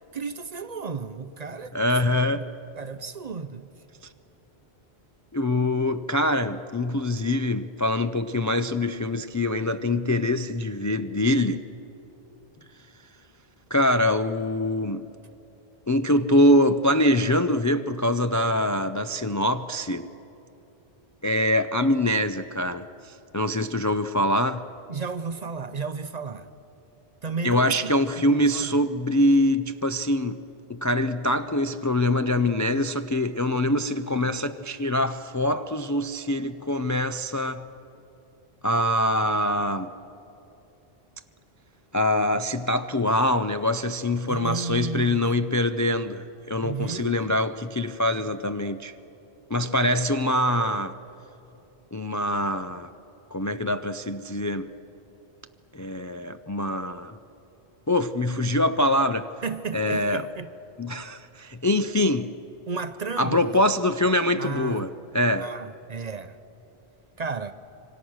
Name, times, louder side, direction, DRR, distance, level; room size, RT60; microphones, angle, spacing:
voice 1, 0.1-1.7 2.3-3.7 24.9-26.5 27.2-28.7 44.3-45.2 46.6-47.2 59.4-60.5 62.7-63.6 64.4-64.9 65.3-66.4 67.2-67.5, right 5 dB, 45° right, 0.7 m, -33 dB
voice 2, 1.7-2.5 5.3-11.6 13.7-15.0 15.9-20.1 21.2-24.7 27.4-30.4 30.7-37.7 38.6-39.9 41.9-48.9 49.5-51.0 51.9-52.9 53.3-54.7 55.7-57.2 57.9-59.3 59.7-60.3 60.8-62.3 63.2-65.5, left 1 dB, 25° left, 0.4 m, -24 dB
26.0 x 25.0 x 6.3 m
omnidirectional pair, 1.1 m